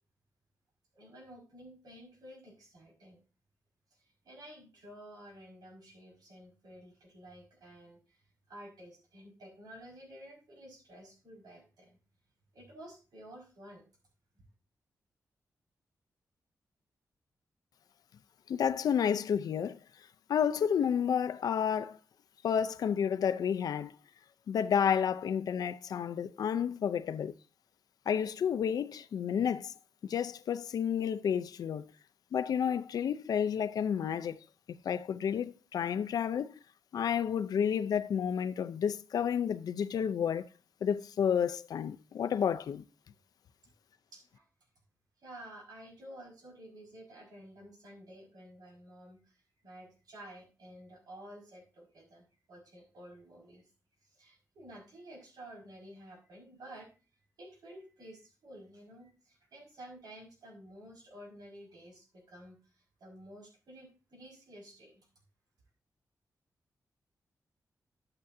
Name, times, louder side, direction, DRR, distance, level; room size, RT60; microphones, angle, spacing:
voice 1, 0.9-3.2 3.9-8.2 8.5-12.0 12.5-13.8 44.1-44.5 45.2-53.7 54.0-56.9 57.4-65.1, right 1 dB, 85° right, 5.6 m, -52 dB
voice 2, 18.5-19.8 20.3-22.0 22.4-23.9 24.5-27.3 28.1-29.7 30.1-31.9 32.3-36.6 36.9-40.5 40.8-42.8, left 8 dB, 90° left, 0.6 m, -31 dB
11.5 x 9.0 x 2.7 m
wide cardioid pair, 175°, 6 cm